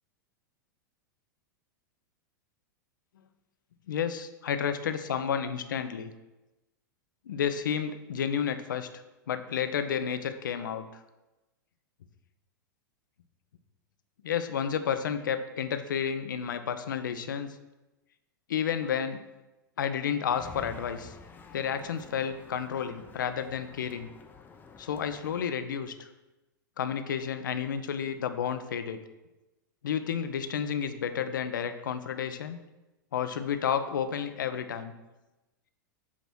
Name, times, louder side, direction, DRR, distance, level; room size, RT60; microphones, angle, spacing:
voice 1, 3.9-6.1 7.3-8.9 9.3-10.9 14.2-17.6 18.5-19.2 19.8-21.1 21.5-24.1 24.8-26.1 26.8-29.0 29.8-32.6 33.1-34.9, left 8 dB, 70° left, 9 dB, 0.6 m, -31 dB
sound 1, 20.3-25.5, left 5 dB, 15° left, 0.7 m, -49 dB
8.2 x 3.0 x 6.1 m, 1.0 s
figure-of-eight pair, 95°, 11 cm